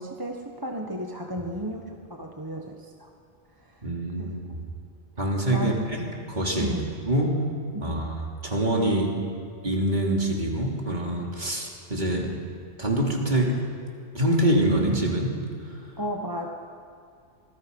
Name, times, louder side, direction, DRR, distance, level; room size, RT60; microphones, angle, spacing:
voice 1, 0.0-3.1 3.6-3.8 4.2-4.4 5.5-5.9 6.6-6.9 7.7-8.0 16.0-16.5, right 1 dB, 20° right, 2 dB, 1.3 m, -34 dB
voice 2, 3.8-4.4 5.2-5.7 6.3-6.8 7.1-7.4 7.8-8.1 8.4-9.1 9.6-12.3 12.8-13.6 14.1-15.4, right 1 dB, 40° right, -1 dB, 3.3 m, -25 dB
26.0 x 20.5 x 5.4 m, 2.3 s
omnidirectional pair, 1.2 m